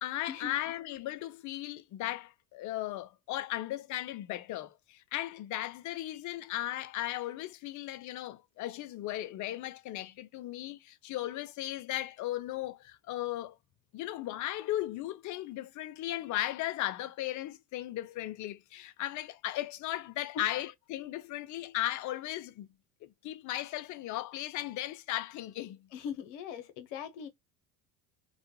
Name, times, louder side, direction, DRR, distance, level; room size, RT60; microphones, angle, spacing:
voice 1, 0.0-13.6 13.9-22.7 23.0-25.9, left 14 dB, 50° left, 0.5 m, -36 dB
voice 2, 25.9-27.3, left 8 dB, 80° left, 0.9 m, -40 dB
2.4 x 2.2 x 2.7 m
supercardioid pair, 85°, 40 cm